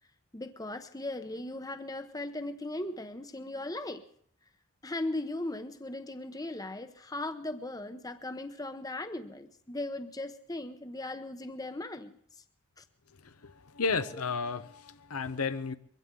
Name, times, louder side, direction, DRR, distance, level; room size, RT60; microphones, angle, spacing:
voice 1, 0.3-4.0 4.8-12.2 12.8-12.9, left 2 dB, 15° left, 9 dB, 0.8 m, -38 dB
voice 2, 13.2-15.7, left 4 dB, 85° left, 12 dB, 0.9 m, -33 dB
22.5 x 15.5 x 3.8 m, 0.63 s
head